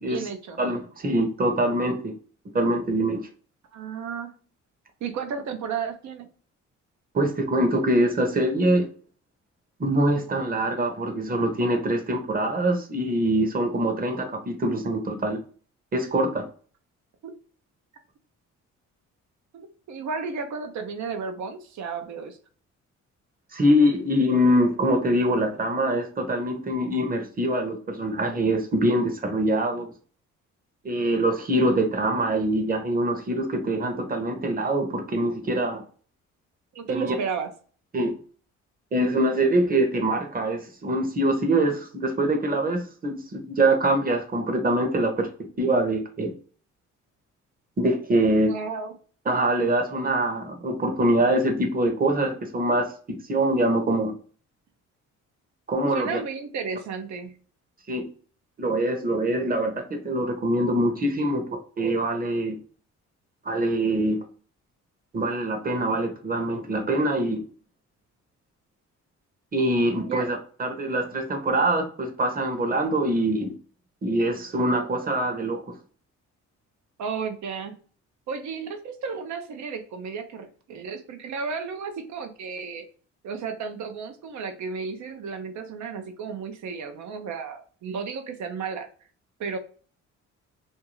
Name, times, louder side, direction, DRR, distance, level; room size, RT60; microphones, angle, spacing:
voice 1, 0.0-0.6 3.7-4.3 5.0-6.3 17.2-17.3 19.5-22.4 36.7-37.5 48.5-48.9 55.9-57.3 70.1-70.3 77.0-77.8 78.3-82.8 83.2-88.9 89.4-89.6, right 5 dB, 70° right, 0.7 m, -33 dB
voice 2, 0.6-2.1 2.5-3.3 7.1-8.9 9.8-15.4 15.9-16.5 23.5-29.9 30.8-35.8 36.9-37.1 37.9-38.1 38.9-45.3 45.6-46.3 47.8-48.5 49.3-52.9 53.3-54.1 55.7-56.2 57.9-58.0 58.6-61.5 61.8-62.6 63.4-64.2 65.1-67.4 69.5-73.5 74.0-75.6, right 1 dB, 30° right, 0.9 m, -24 dB
2.6 x 2.3 x 3.0 m
cardioid pair, 90°, 30 cm